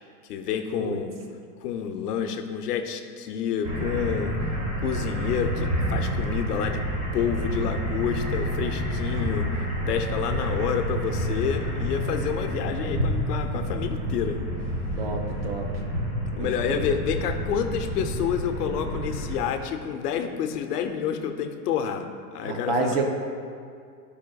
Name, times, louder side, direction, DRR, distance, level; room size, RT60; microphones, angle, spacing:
voice 1, 0.3-1.2 1.6-4.3 4.8-6.8 7.1-9.5 9.9-14.4 16.3-22.1 22.3-23.0, left 8 dB, 70° left, 6 dB, 0.8 m, -29 dB
sound 1, 3.6-19.3, equal, 20° right, 1.0 m, -29 dB
voice 2, 15.0-15.7 16.4-16.9 22.4-23.0, right 3 dB, 40° right, 3 dB, 0.5 m, -29 dB
11.0 x 5.0 x 2.3 m, 2.3 s
supercardioid pair, 165°, 49 cm